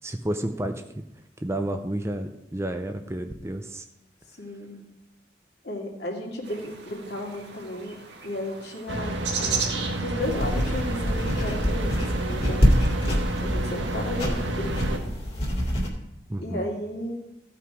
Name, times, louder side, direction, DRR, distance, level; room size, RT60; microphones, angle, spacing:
voice 1, 0.0-1.0 1.4-3.8 16.3-16.6, right 1 dB, 15° right, 7 dB, 0.5 m, -31 dB
voice 2, 4.4-4.8 5.6-8.0 8.2-9.7 9.9-12.7 13.4-15.1 16.4-17.1, left 1 dB, 60° left, -1 dB, 2.3 m, -34 dB
sound 1, 6.4-12.7, right 6 dB, 65° right, 1.6 m, -36 dB
sound 2, 8.9-15.0, right 1 dB, 85° right, 1.2 m, -30 dB
sound 3, 10.2-15.9, equal, 30° left, 2.3 m, -25 dB
14.5 x 5.9 x 4.8 m, 0.85 s
head